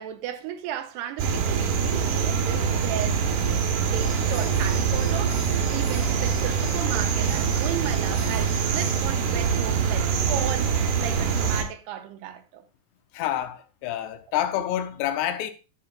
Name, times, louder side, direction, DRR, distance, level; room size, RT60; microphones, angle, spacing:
voice 1, 0.0-3.3 3.8-12.6, right 10 dB, 80° right, 2.7 m, -35 dB
sound 1, 1.2-11.6, right 6 dB, 65° right, 2.3 m, -24 dB
sound 2, 3.9-9.1, left 3 dB, 50° left, 3.6 m, -45 dB
voice 2, 13.1-15.5, left 11 dB, 85° left, 3.1 m, -28 dB
11.5 x 8.8 x 2.4 m
omnidirectional pair, 5.0 m